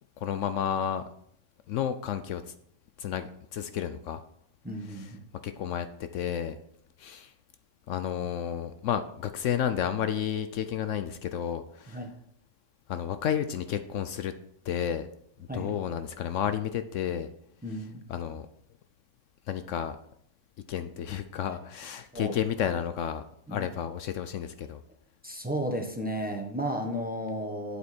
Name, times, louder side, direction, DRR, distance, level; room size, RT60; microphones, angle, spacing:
voice 1, 0.2-1.0 1.7-2.4 3.0-4.2 5.4-6.6 7.0-7.3 7.9-12.0 12.9-14.3 14.6-15.1 15.5-17.3 18.1-18.5 19.5-20.0 20.7-23.2 23.5-24.8, left 9 dB, 70° left, 10 dB, 0.9 m, -31 dB
voice 2, 4.6-5.2 11.9-12.1 15.5-15.7 17.6-18.0 22.1-22.4 23.5-23.7 25.2-27.8, equal, 5° right, 2 dB, 1.1 m, -33 dB
8.5 x 7.9 x 4.3 m, 0.70 s
omnidirectional pair, 1.4 m